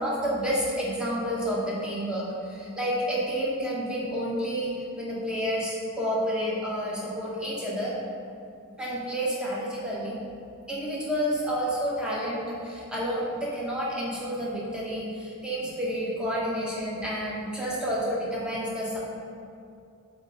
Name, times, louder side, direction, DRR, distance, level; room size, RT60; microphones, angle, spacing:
voice 1, 0.0-7.9 8.8-10.2 10.7-19.0, equal, 5° right, -7 dB, 1.1 m, -30 dB
7.4 x 3.3 x 3.9 m, 2.5 s
head